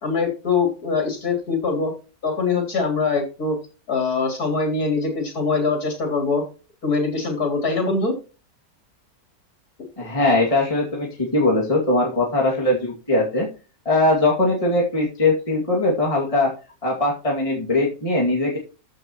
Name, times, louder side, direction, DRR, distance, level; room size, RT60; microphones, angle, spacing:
voice 1, 0.0-1.9 2.2-3.6 3.9-6.4 6.8-8.1, left 4 dB, 80° left, 2 dB, 3.7 m, -23 dB
voice 2, 10.0-13.5 13.9-16.5 16.8-18.6, left 2 dB, 20° left, -2 dB, 2.3 m, -20 dB
14.5 x 6.6 x 3.0 m, 0.33 s
omnidirectional pair, 1.6 m